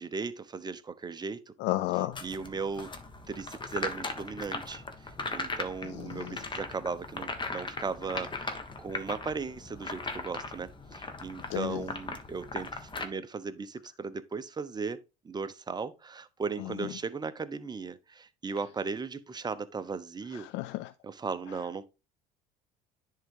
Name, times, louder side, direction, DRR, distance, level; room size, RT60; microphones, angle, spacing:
voice 1, 0.0-1.5 2.2-2.9 3.3-15.0 15.2-20.5 21.0-21.9, right 4 dB, 20° right, 0.8 m, -37 dB
voice 2, 1.6-2.2 5.9-6.4 11.5-11.8 20.4-20.9, left 17 dB, 60° left, 0.5 m, -32 dB
sound 1, 2.1-13.0, left 3 dB, 25° left, 1.4 m, -39 dB
10.5 x 3.8 x 3.7 m
hypercardioid pair, 70°, 21 cm